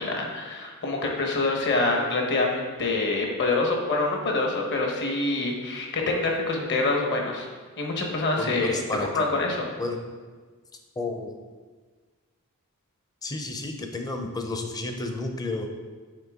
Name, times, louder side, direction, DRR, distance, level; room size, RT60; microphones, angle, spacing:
voice 1, 0.0-7.5 7.8-8.7 9.1-9.7, left 3 dB, 55° left, 1 dB, 1.0 m, -26 dB
voice 2, 8.4-9.5 9.8-10.0 11.0-11.4 13.2-15.7, left 2 dB, 15° left, 4 dB, 0.5 m, -32 dB
6.6 x 4.2 x 3.6 m, 1.4 s
head